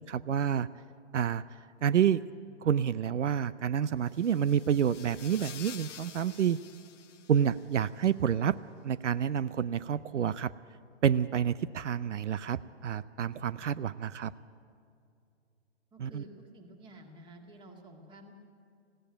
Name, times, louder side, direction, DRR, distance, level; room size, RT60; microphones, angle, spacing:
voice 1, 0.1-0.7 1.1-1.4 1.8-2.2 2.6-6.6 7.3-8.5 8.8-10.5 11.0-14.3 16.0-16.2, right 8 dB, 80° right, 17 dB, 0.7 m, -28 dB
sound 1, 4.0-7.9, left 8 dB, 85° left, 1.1 m, -49 dB
voice 2, 15.9-18.3, right 1 dB, 15° right, 4 dB, 2.0 m, -51 dB
19.0 x 16.5 x 9.0 m, 2.5 s
hypercardioid pair, 150°, 35 cm